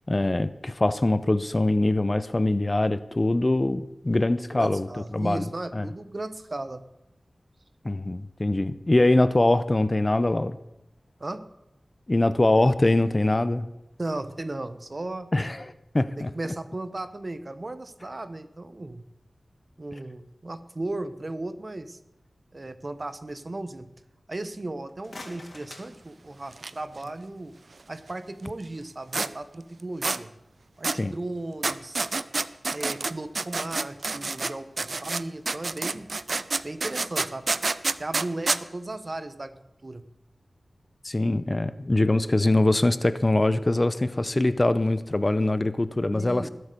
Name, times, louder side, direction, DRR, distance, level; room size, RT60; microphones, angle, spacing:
voice 1, 0.1-4.9 5.1-5.4 5.7-5.9 7.8-10.6 12.1-13.6 15.3-15.6 15.9-16.3 31.0-31.1 41.0-46.5, left 2 dB, 30° left, 14 dB, 0.8 m, -23 dB
voice 2, 4.5-6.9 11.2-11.4 14.0-15.3 16.2-19.0 19.8-22.0 22.5-23.9 24.3-27.6 27.9-30.3 30.8-32.0 32.7-36.1 36.6-37.5 38.0-40.0 46.1-46.5, right 2 dB, 40° right, 12 dB, 1.1 m, -36 dB
sound 1, 24.7-26.8, left 2 dB, 50° left, 3.1 m, -46 dB
sound 2, 26.5-26.7 26.9-27.0 29.1-29.3 30.0-30.2 30.8-31.0 31.6-34.5 34.8-38.6, right 3 dB, 65° right, 0.6 m, -28 dB
20.0 x 8.0 x 6.8 m, 0.90 s
wide cardioid pair, 55°, 0 cm